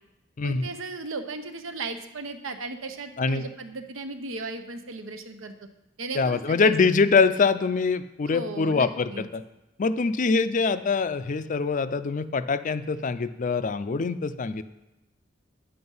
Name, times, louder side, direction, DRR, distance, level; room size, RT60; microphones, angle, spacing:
voice 1, 0.4-5.5 6.0-6.8 8.3-9.3, right 3 dB, 85° right, 8 dB, 0.9 m, -36 dB
voice 2, 6.1-9.4 9.8-14.6, left 4 dB, 40° left, 13 dB, 0.4 m, -24 dB
10.0 x 7.8 x 5.5 m, 0.97 s
head